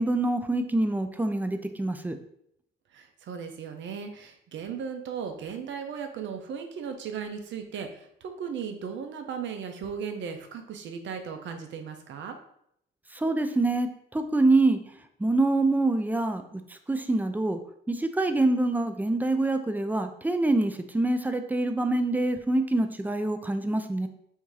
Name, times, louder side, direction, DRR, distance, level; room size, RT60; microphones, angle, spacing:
voice 1, 0.0-2.2 13.1-14.8 15.2-17.6 17.9-24.1, right 2 dB, 10° right, 7 dB, 0.4 m, -25 dB
voice 2, 2.9-12.4, right 6 dB, 70° right, 6 dB, 0.7 m, -36 dB
3.6 x 2.7 x 4.7 m, 0.72 s
cardioid pair, 90°, 20 cm